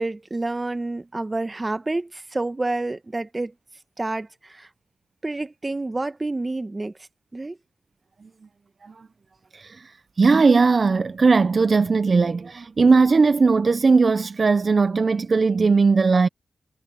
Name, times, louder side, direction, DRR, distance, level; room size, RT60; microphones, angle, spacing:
voice 1, 0.0-3.5 4.0-4.7 5.2-6.9 7.3-7.6, right 2 dB, 25° right, 1.3 m, -28 dB
voice 2, 9.5-16.3, right 4 dB, 50° right, 0.5 m, -18 dB
cardioid pair, 65°, 0 cm